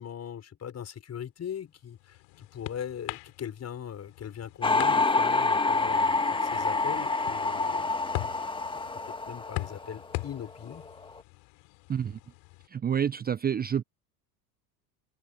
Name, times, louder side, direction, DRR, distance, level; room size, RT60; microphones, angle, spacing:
voice 1, 0.0-8.1 8.4-8.8 9.1-10.9, left 9 dB, 30° left, 6.4 m, -40 dB
sound 1, 1.6-12.7, left 28 dB, 55° left, 4.2 m, -42 dB
sound 2, 4.6-10.4 10.7-11.2, left 3 dB, 10° left, 1.8 m, -27 dB
voice 2, 11.9-12.2 12.7-13.8, right 8 dB, 20° right, 0.9 m, -28 dB
figure-of-eight pair, 80°, 49 cm